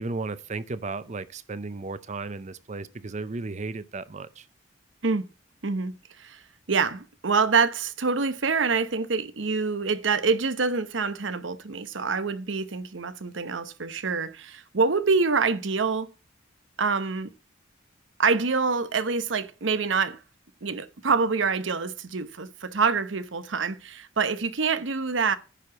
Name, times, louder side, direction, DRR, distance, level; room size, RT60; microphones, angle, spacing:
voice 1, 0.0-4.5, right 3 dB, 40° right, 0.6 m, -34 dB
voice 2, 5.6-6.4 6.7-16.1 16.8-17.3 18.2-20.2 20.6-25.4, right 4 dB, 75° right, 0.9 m, -26 dB
9.9 x 4.8 x 7.0 m
head